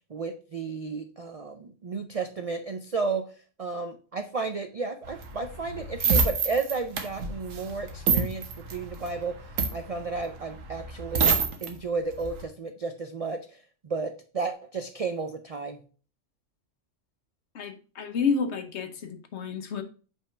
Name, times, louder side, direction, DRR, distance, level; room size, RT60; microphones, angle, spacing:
voice 1, 0.1-3.3 3.6-9.4 9.7-15.8, right 4 dB, 65° right, 7 dB, 0.3 m, -33 dB
sound 1, 5.1-11.7 12.1-12.4, right 5 dB, 90° right, 1.3 m, -27 dB
voice 2, 17.5-19.8, left 5 dB, 65° left, 7 dB, 1.1 m, -30 dB
5.4 x 3.5 x 5.4 m, 0.38 s
omnidirectional pair, 1.3 m